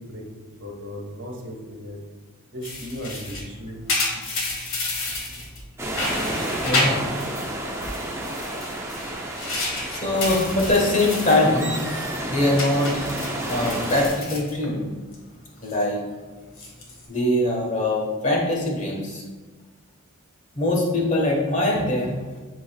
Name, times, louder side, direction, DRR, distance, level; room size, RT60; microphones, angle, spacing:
voice 1, 0.0-2.0 2.5-3.8, equal, 55° right, -1 dB, 1.5 m, -36 dB
necklace chain on metal table, 2.6-5.6 5.9-7.5 7.8-11.5 11.8-12.1 12.6-15.1 15.5-15.8 16.4-17.0, left 2 dB, 60° left, 1.7 m, -30 dB
sound 1, 5.8-14.1, right 1 dB, 10° right, 0.6 m, -31 dB
voice 2, 6.7-7.0 9.2-9.6 9.8-14.9 15.6-16.0 17.1-19.2 20.5-22.2, left 1 dB, 35° left, -2 dB, 1.4 m, -23 dB
11.0 x 4.0 x 2.4 m, 1.3 s
head